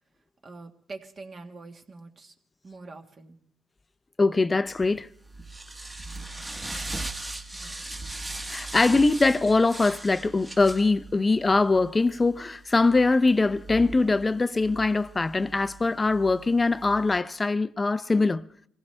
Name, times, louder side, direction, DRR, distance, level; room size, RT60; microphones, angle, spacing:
voice 1, 0.4-2.3 2.6-3.4 7.5-7.7, right 3 dB, 40° right, 1.7 m, -44 dB
voice 2, 4.2-5.1 8.5-18.4, left 3 dB, 25° left, 0.5 m, -22 dB
sound 1, 4.8-17.2, right 2 dB, 20° right, 1.4 m, -40 dB
24.0 x 16.0 x 3.4 m
cardioid pair, 85°, 0 cm